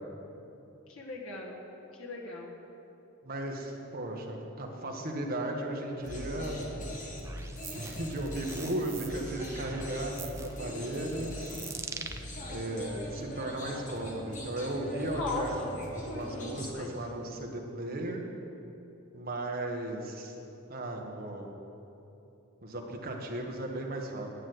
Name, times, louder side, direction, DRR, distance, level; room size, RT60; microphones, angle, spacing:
voice 1, 0.9-1.6 1.9-2.5 15.1-15.8 16.2-16.9, left 3 dB, 85° left, -2 dB, 1.6 m, -38 dB
voice 2, 3.2-6.8 7.7-11.5 12.5-15.6 15.9-18.2 19.1-20.3 20.7-21.5 22.6-24.3, right 1 dB, 45° right, 1 dB, 1.4 m, -36 dB
sound 1, 6.0-16.7, left 1 dB, 40° left, 1.7 m, -41 dB
sound 2, 7.2-12.2, right 5 dB, 15° right, 0.4 m, -44 dB
9.9 x 8.3 x 7.9 m, 2.9 s
head